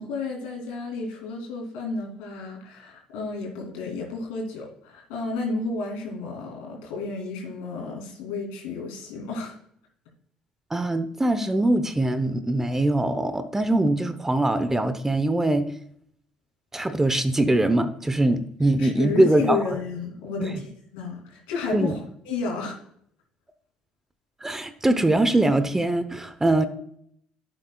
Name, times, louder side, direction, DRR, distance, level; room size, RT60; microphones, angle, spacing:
voice 1, 0.0-9.6 18.8-20.6 20.9-22.8, left 4 dB, 90° left, 0 dB, 3.0 m, -32 dB
voice 2, 10.7-15.7 16.7-19.6 20.4-20.6 21.7-21.9 24.4-26.7, right 1 dB, 15° right, 11 dB, 0.9 m, -22 dB
11.0 x 7.8 x 2.3 m, 0.68 s
supercardioid pair, 70°, 3 cm